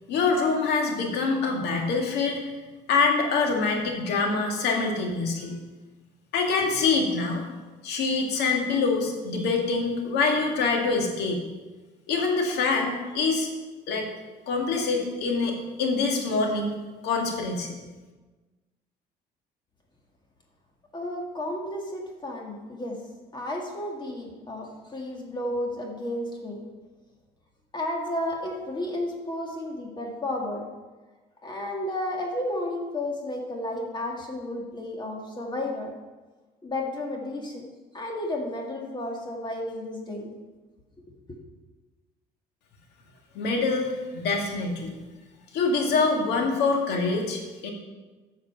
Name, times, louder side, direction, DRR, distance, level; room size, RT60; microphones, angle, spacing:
voice 1, 0.1-2.4 2.9-5.6 6.3-7.4 7.8-11.4 12.1-13.5 13.9-14.1 14.5-16.8 17.0-17.7 43.3-45.0 45.5-47.7, left 4 dB, 80° left, 2 dB, 1.9 m, -25 dB
voice 2, 20.9-23.0 23.3-26.6 27.7-30.6 31.4-35.9 36.6-37.6 37.9-40.4 41.3-41.4, left 1 dB, 25° left, 0 dB, 1.9 m, -32 dB
7.9 x 6.8 x 6.7 m, 1.3 s
cardioid pair, 110°, 17 cm